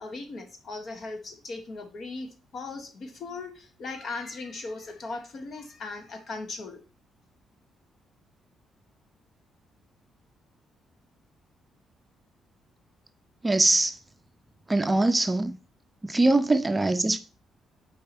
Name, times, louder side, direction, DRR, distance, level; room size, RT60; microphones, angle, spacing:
voice 1, 0.0-6.8, left 3 dB, 55° left, 1.4 m, -38 dB
voice 2, 13.4-14.0 14.7-15.6 16.0-17.2, right 2 dB, 15° right, 0.5 m, -22 dB
4.8 x 4.6 x 5.9 m
cardioid pair, 90°, 0 cm